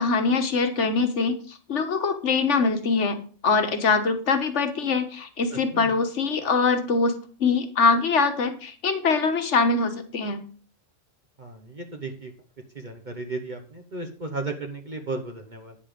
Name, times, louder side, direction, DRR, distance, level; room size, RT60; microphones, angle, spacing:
voice 1, 0.0-3.2 3.4-7.2 7.4-10.4, left 4 dB, 65° left, 7 dB, 1.6 m, -23 dB
voice 2, 5.5-5.9 11.4-12.3 12.7-15.7, right 3 dB, 40° right, 4 dB, 1.2 m, -35 dB
9.5 x 7.1 x 5.1 m, 0.41 s
omnidirectional pair, 1.3 m